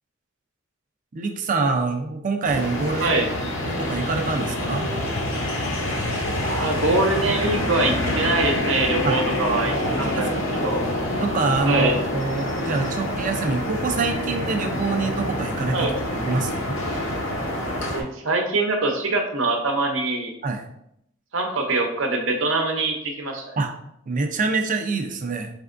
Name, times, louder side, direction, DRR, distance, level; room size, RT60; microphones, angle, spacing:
voice 1, 1.1-4.9 9.0-9.2 10.0-10.4 11.1-16.8 20.4-20.6 23.6-23.7 24.1-25.5, right 3 dB, 40° right, 5 dB, 0.5 m, -26 dB
sound 1, 2.5-18.0, left 1 dB, 75° left, 0.8 m, -26 dB
voice 2, 3.0-3.4 6.4-10.8 11.7-12.0 15.7-16.0 17.8-20.3 21.3-23.6, right 2 dB, 80° right, 3 dB, 0.8 m, -24 dB
4.3 x 3.4 x 2.5 m, 0.75 s
head